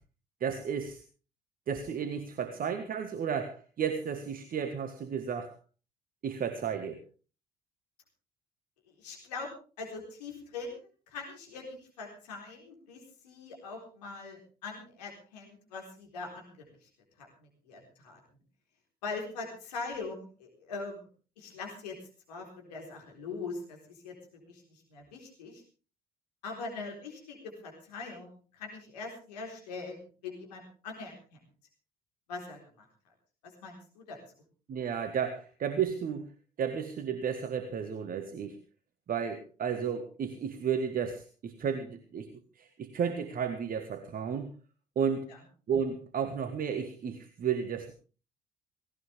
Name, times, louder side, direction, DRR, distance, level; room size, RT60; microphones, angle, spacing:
voice 1, 0.4-1.0 1.7-5.5 6.2-7.0 34.7-36.3 36.6-38.6 39.1-42.3 42.6-44.5 44.9-45.3 45.7-47.9, right 7 dB, 45° right, 9 dB, 1.7 m, -33 dB
voice 2, 9.0-9.5 9.8-16.6 17.2-18.2 19.0-21.1 21.4-22.0 22.3-24.1 24.4-25.6 26.4-27.4 27.6-31.1 32.3-32.6 33.6-34.2 45.3-45.4, left 4 dB, 75° left, 1 dB, 4.1 m, -42 dB
17.5 x 17.5 x 3.5 m, 0.36 s
figure-of-eight pair, 50°, 21 cm